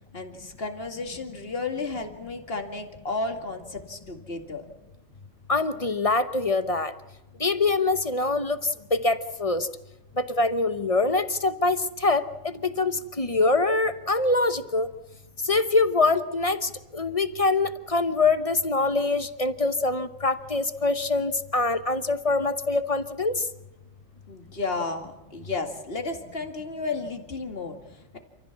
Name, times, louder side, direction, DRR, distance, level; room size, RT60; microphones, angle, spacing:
voice 1, 0.1-4.7 24.3-28.2, left 3 dB, 50° left, 5 dB, 2.4 m, -33 dB
voice 2, 5.5-6.9 7.4-8.6 8.9-9.7 10.2-12.2 12.6-14.9 15.5-23.4, left 3 dB, 30° left, 11 dB, 0.9 m, -24 dB
28.5 x 15.0 x 7.2 m, 1.0 s
omnidirectional pair, 1.3 m